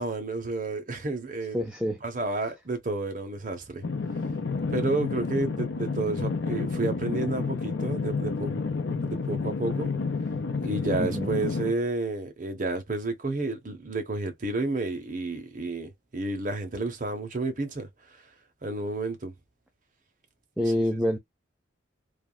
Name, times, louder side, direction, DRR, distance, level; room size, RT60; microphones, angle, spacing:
voice 1, 0.0-1.6 2.0-3.8 4.7-8.5 9.1-9.9 10.6-17.9 18.6-19.3, right 2 dB, 40° right, 0.8 m, -30 dB
voice 2, 1.5-2.0 11.0-11.3 20.6-21.2, left 1 dB, 5° right, 0.4 m, -26 dB
sound 1, 3.8-11.7, left 4 dB, 75° left, 0.6 m, -30 dB
3.4 x 2.3 x 2.2 m
head